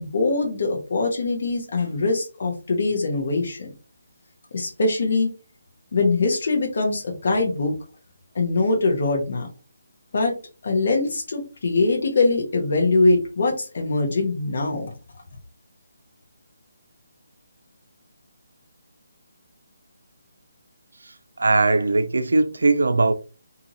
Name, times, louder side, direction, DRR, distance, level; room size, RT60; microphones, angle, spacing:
voice 1, 0.0-3.7 4.5-5.3 5.9-7.7 8.3-9.5 10.1-10.3 10.6-14.9, left 3 dB, 55° left, 1.0 m, -22 dB
voice 2, 21.0-23.1, right 3 dB, 75° right, 0.3 m, -20 dB
2.7 x 2.5 x 2.8 m
figure-of-eight pair, 155°, 0 cm